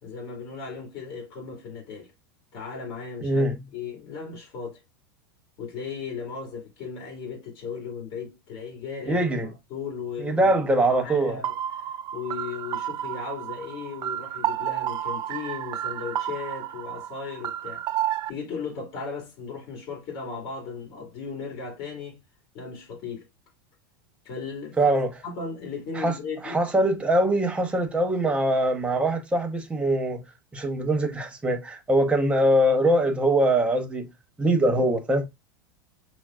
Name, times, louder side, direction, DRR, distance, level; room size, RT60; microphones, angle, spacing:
voice 1, 0.0-2.1 2.5-3.4 3.7-4.8 5.6-9.3 9.7-17.9 18.3-22.2 22.5-23.2 24.2-26.6, left 5 dB, 50° left, 2.0 m, -36 dB
voice 2, 3.2-3.6 9.1-9.5 10.2-11.4 24.8-25.1 25.9-26.1 26.4-30.2 30.5-34.1 34.4-35.3, right 1 dB, 10° right, 0.8 m, -22 dB
sound 1, 11.4-18.3, right 11 dB, 35° right, 0.4 m, -31 dB
5.9 x 2.0 x 2.3 m
supercardioid pair, 120°, 12 cm